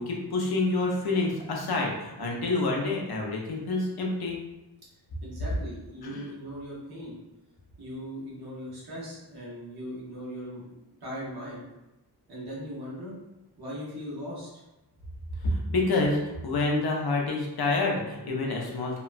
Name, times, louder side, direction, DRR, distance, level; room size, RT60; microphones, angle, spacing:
voice 1, 0.0-4.4 6.0-6.3 15.4-19.0, left 2 dB, 65° left, -1 dB, 0.6 m, -28 dB
voice 2, 5.2-7.1 7.8-11.6 12.3-13.2 13.6-14.5, equal, 65° right, -6 dB, 1.0 m, -39 dB
2.8 x 2.1 x 2.4 m, 0.99 s
wide cardioid pair, 125°, 41 cm